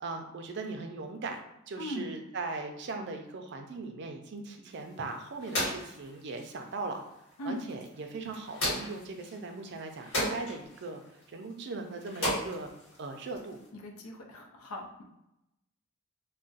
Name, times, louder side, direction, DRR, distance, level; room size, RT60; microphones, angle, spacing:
voice 1, 0.0-1.4 1.7-7.0 7.4-11.0 11.3-12.7 13.0-13.6, right 3 dB, 50° right, 5 dB, 0.4 m, -39 dB
voice 2, 1.8-2.1 7.4-7.6 13.7-15.0, left 1 dB, 90° left, 2 dB, 0.6 m, -39 dB
sound 1, 4.7-13.7, left 1 dB, 70° left, 1.4 m, -38 dB
2.4 x 2.1 x 3.9 m, 0.86 s
head